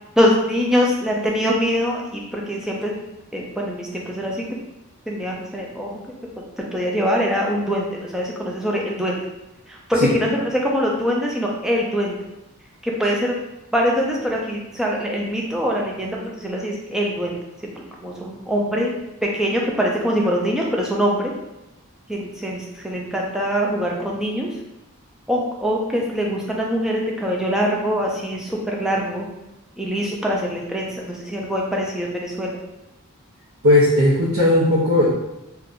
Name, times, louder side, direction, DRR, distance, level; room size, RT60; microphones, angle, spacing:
voice 1, 0.2-2.9 3.3-4.4 5.1-5.9 6.7-9.2 9.7-12.1 12.8-13.3 13.7-17.4 18.0-18.9 19.2-21.3 22.1-24.5 25.3-29.3 29.8-32.6, equal, 5° right, -2 dB, 0.3 m, -23 dB
voice 2, 33.6-35.1, left 1 dB, 70° right, -7 dB, 0.6 m, -16 dB
2.5 x 2.2 x 3.6 m, 0.95 s
head